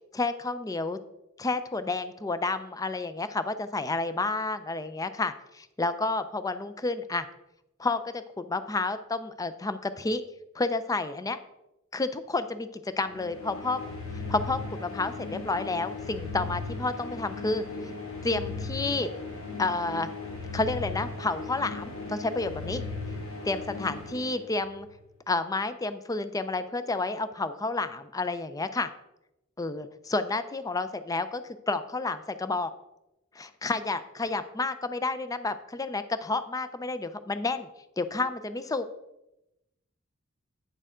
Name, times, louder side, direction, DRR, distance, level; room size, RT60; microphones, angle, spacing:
voice 1, 0.1-1.0 1.4-7.3 7.8-10.2 10.5-11.4 11.9-12.7 13.0-13.8 14.3-17.6 18.2-19.1 19.6-20.1 20.5-22.8 23.4-24.9 25.3-28.9 29.6-32.7 33.4-37.7 38.0-38.9, left 3 dB, 15° left, 12 dB, 0.4 m, -30 dB
sound 1, 13.0-24.9, left 3 dB, 80° left, 2.7 m, -37 dB
9.1 x 6.7 x 3.7 m, 0.91 s
head